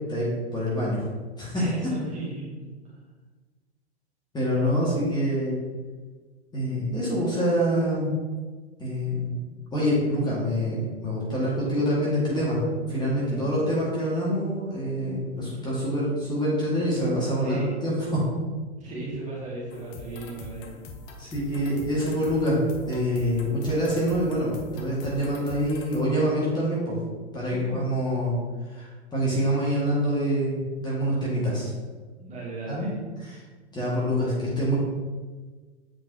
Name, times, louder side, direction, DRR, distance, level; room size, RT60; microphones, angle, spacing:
voice 1, 0.1-1.0 1.4-1.6 4.3-5.6 6.5-8.2 8.8-9.3 9.7-12.6 12.9-18.2 21.2-22.6 22.9-26.9 27.3-28.4 28.7-31.7 32.7-32.9 33.2-33.4 33.7-34.7, equal, 10° left, -6 dB, 1.7 m, -26 dB
voice 2, 1.5-2.7 13.2-13.6 17.4-17.7 18.8-20.8 27.4-27.8 32.2-32.9, right 2 dB, 20° right, -6 dB, 1.9 m, -36 dB
sound 1, 19.7-26.0, left 3 dB, 30° left, 0.7 m, -42 dB
7.6 x 5.2 x 2.7 m, 1.4 s
figure-of-eight pair, 105°, 34 cm